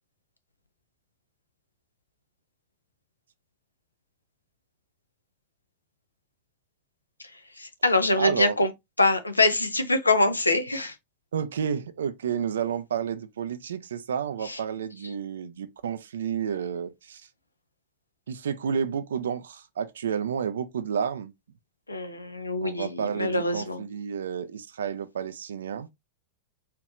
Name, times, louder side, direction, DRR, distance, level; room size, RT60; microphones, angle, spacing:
voice 1, 7.6-8.7 9.0-10.9 14.5-14.6 21.9-23.8, left 2 dB, 80° left, 0.6 m, -24 dB
voice 2, 8.2-8.6 11.3-17.3 18.3-21.3 22.6-25.9, right 7 dB, 65° right, 0.5 m, -31 dB
4.4 x 2.9 x 2.4 m
figure-of-eight pair, 90°, 0 cm